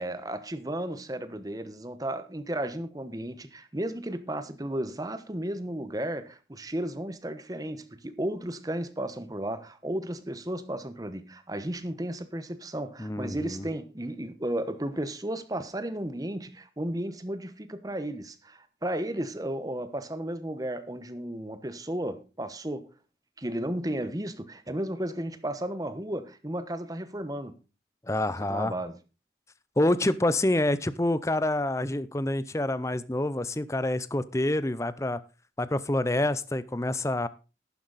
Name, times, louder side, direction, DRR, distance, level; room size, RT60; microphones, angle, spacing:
voice 1, 0.0-22.9 23.4-27.6 28.4-29.0, right 1 dB, 20° right, 1.0 m, -34 dB
voice 2, 13.0-13.7 28.1-28.7 29.8-35.2 35.6-37.3, left 1 dB, 15° left, 0.6 m, -27 dB
11.5 x 10.0 x 4.1 m
head